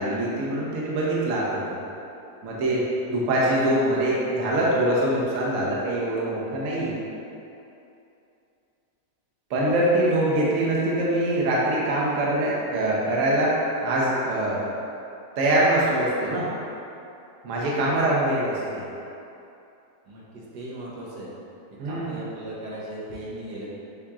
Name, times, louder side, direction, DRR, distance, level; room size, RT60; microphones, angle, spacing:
voice 1, 0.0-1.8 2.4-7.0 9.5-14.6 15.4-16.5 17.4-18.9 21.8-22.2, right 1 dB, 60° right, -5 dB, 1.0 m, -24 dB
voice 2, 20.1-21.3 21.8-23.7, right 1 dB, 80° right, -6 dB, 1.4 m, -37 dB
7.3 x 2.9 x 2.4 m, 2.7 s
omnidirectional pair, 1.8 m